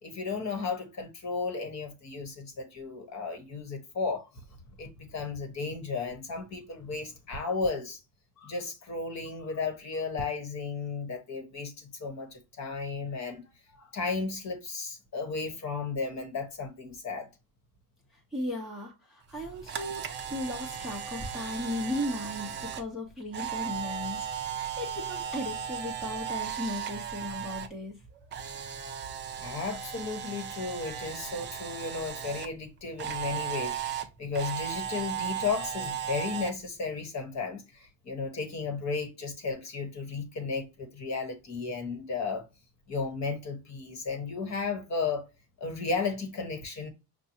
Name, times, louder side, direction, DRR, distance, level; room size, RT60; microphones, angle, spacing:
voice 1, 0.0-4.3 4.8-8.0 8.4-13.4 13.7-17.3 29.4-42.5 42.9-45.3 45.6-46.9, left 4 dB, 35° left, 1.2 m, -34 dB
voice 2, 18.1-28.5 28.8-29.4, left 1 dB, ahead, 0.8 m, -37 dB
Camera, 19.3-27.7 28.0-32.5 33.0-36.5, right 8 dB, 25° right, 0.5 m, -36 dB
5.9 x 2.3 x 2.7 m
cardioid pair, 135°, 46 cm